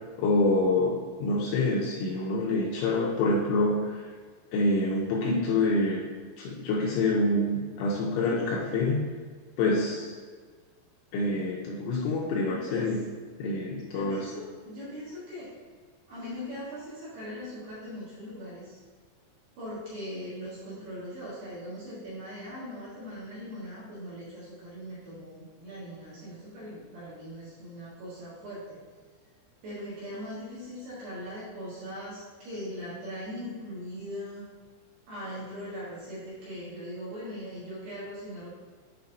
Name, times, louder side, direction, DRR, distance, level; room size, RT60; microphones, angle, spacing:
voice 1, 0.2-3.9 4.5-6.0 6.4-9.0 9.6-10.1 11.1-13.0 13.4-14.2, left 2 dB, 85° left, -4 dB, 2.8 m, -26 dB
voice 2, 12.5-12.9 13.9-15.5 16.1-18.8 19.6-28.8 29.6-34.5 35.1-38.5, equal, 60° right, -9 dB, 2.7 m, -40 dB
8.1 x 5.2 x 2.6 m, 1.5 s
omnidirectional pair, 6.0 m